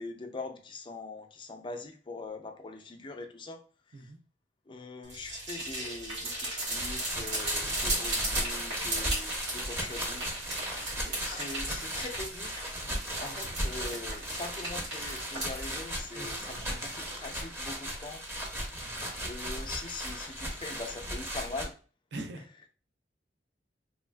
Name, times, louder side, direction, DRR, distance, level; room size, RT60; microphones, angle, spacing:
voice 1, 0.0-3.6 3.9-4.1 4.7-10.4 11.0-12.7 13.2-18.2 19.2-21.7, left 3 dB, 30° left, 0.4 m, -42 dB
sound 1, 5.0-15.7, right 1 dB, 90° right, 1.5 m, -36 dB
sound 2, 6.6-21.7, equal, 15° right, 0.6 m, -36 dB
voice 2, 16.1-16.8 18.8-19.1 22.1-22.4, right 2 dB, 70° right, 0.5 m, -44 dB
3.3 x 2.3 x 2.2 m
head